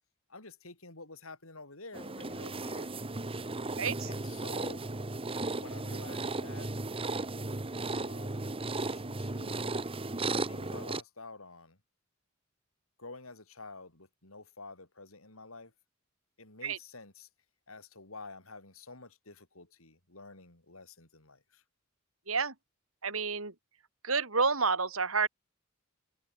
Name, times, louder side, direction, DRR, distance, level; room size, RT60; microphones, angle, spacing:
voice 1, 0.3-2.9 4.0-4.8 5.6-6.7 7.9-9.8 10.3-11.8 13.0-15.7 16.4-17.3 17.7-21.6, left 3 dB, 90° left, 6.9 m, -49 dB
sound 1, 1.9-11.0, right 2 dB, 25° right, 1.2 m, -35 dB
voice 2, 3.8-4.1 16.6-16.8 22.3-22.5 23.0-23.5 24.0-25.3, right 4 dB, 90° right, 4.4 m, -29 dB
head